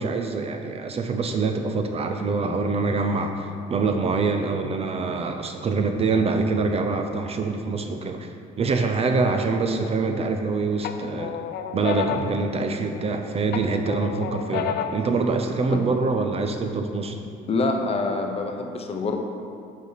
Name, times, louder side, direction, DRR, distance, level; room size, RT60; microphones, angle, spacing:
voice 1, 0.0-8.3 8.6-11.4 11.7-17.2, right 4 dB, 35° right, 5 dB, 0.6 m, -25 dB
sound 1, 9.8-10.4 10.8-13.1 13.5-15.1, left 9 dB, 70° left, 0.5 m, -31 dB
voice 2, 17.5-19.2, left 3 dB, 35° left, 3 dB, 0.8 m, -26 dB
8.1 x 5.4 x 4.0 m, 2.4 s
cardioid pair, 110°, 17 cm